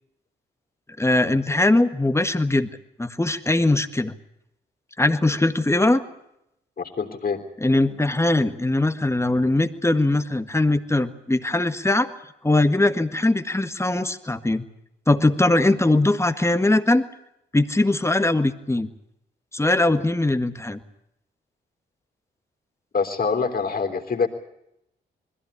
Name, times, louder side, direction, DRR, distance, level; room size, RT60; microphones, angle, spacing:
voice 1, 1.0-2.7 3.0-4.1 5.0-6.0 7.6-12.1 12.4-14.6 15.1-17.0 17.5-18.9 19.5-20.8, left 2 dB, 15° left, 10 dB, 1.6 m, -21 dB
voice 2, 6.8-7.4 19.8-20.1 22.9-24.3, left 5 dB, 50° left, 3 dB, 3.5 m, -25 dB
21.0 x 15.5 x 10.0 m, 0.82 s
supercardioid pair, 55°, 19 cm